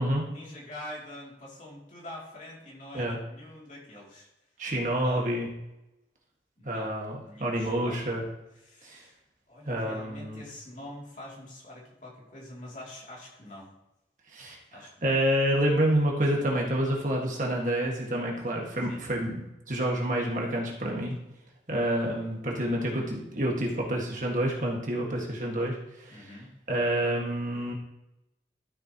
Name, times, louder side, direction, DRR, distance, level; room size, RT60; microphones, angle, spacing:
voice 1, 0.3-4.3 5.0-5.3 6.6-6.9 7.2-8.1 8.6-9.1 9.5-13.7 14.7-15.1 18.8-19.0 26.1-26.5, left 1 dB, 45° left, -4 dB, 2.8 m, -45 dB
voice 2, 4.6-5.5 6.6-8.2 8.8-9.0 9.6-10.4 14.3-14.5 15.0-19.4 19.7-21.1 21.7-25.8 26.1-26.3 26.7-27.7, right 1 dB, 45° right, -1 dB, 1.7 m, -28 dB
12.5 x 6.7 x 3.0 m, 0.90 s
head